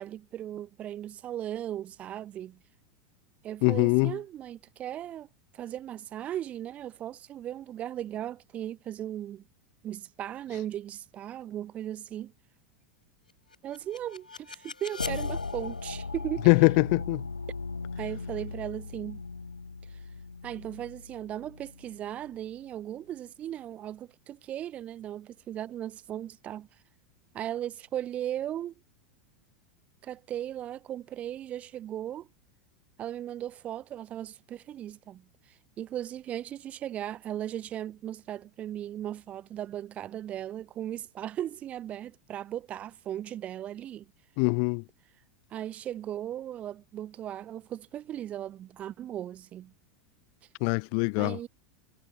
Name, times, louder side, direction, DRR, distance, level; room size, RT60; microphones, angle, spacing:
voice 1, 0.0-2.6 3.4-5.3 5.5-9.4 9.8-12.3 13.6-16.5 18.0-19.2 19.9-20.0 20.4-26.7 27.3-28.7 30.0-32.3 33.0-44.1 45.5-49.7 51.2-51.5, right 11 dB, 30° right, 2.1 m, -37 dB
voice 2, 3.6-4.1 16.5-17.2 44.4-44.8 50.6-51.4, left 40 dB or more, 45° left, 0.5 m, -23 dB
sound 1, 13.5-22.5, left 4 dB, 80° left, 2.6 m, -38 dB
figure-of-eight pair, 85°, 4 cm